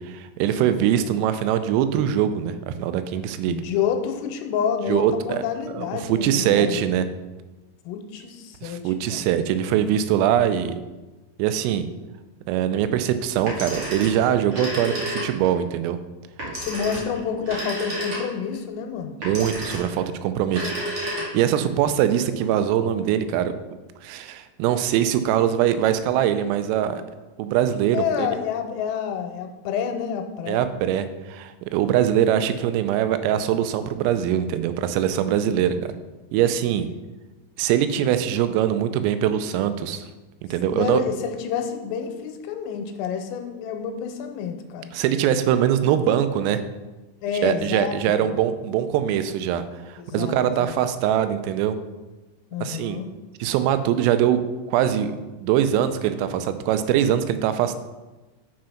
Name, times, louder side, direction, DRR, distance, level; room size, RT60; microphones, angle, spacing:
voice 1, 0.0-3.6 4.9-5.4 5.7-7.1 8.6-10.8 11.4-11.9 12.5-16.0 19.2-20.7 21.1-23.5 24.0-27.0 27.4-28.4 30.5-35.8 36.3-36.9 37.6-40.1 40.5-41.0 44.9-46.6 47.4-51.8 52.6-53.0 53.4-54.4 54.7-55.1 55.4-57.8, right 10 dB, 85° right, 11 dB, 3.2 m, -22 dB
voice 2, 0.6-1.2 3.5-6.8 7.9-9.3 16.5-19.1 27.9-30.6 35.6-35.7 40.7-44.9 47.2-48.0 48.2-48.4 50.0-50.8 52.5-53.1, left 7 dB, 90° left, 5 dB, 3.4 m, -29 dB
Telephone, 13.4-15.6 16.4-18.5 19.2-20.0 20.4-21.6, equal, 45° right, 1.8 m, -31 dB
7.7 x 5.9 x 5.7 m, 1.1 s
omnidirectional pair, 5.9 m